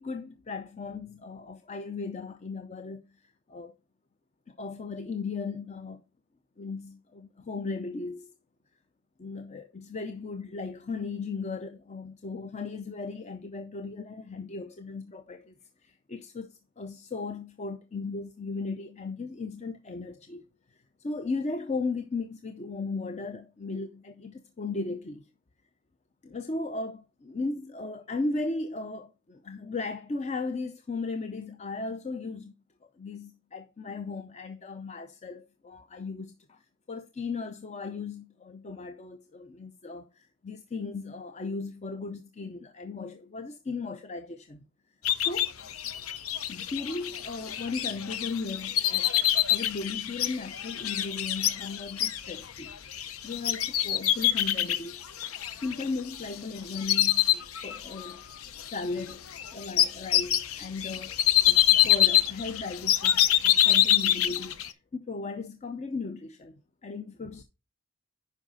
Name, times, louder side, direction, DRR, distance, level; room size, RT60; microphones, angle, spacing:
voice 1, 0.0-3.8 4.5-6.0 6.6-8.3 9.2-15.5 15.8-20.4 21.0-25.3 26.2-32.5 32.8-36.6 36.9-44.6 45.2-45.5 46.5-49.1 49.5-55.1 55.6-58.2 58.6-67.4, left 3 dB, 30° left, 0.5 m, -36 dB
sound 1, 45.0-56.4 56.7-58.1 58.4-64.7, left 12 dB, 90° left, 0.7 m, -26 dB
9.8 x 5.5 x 3.9 m
head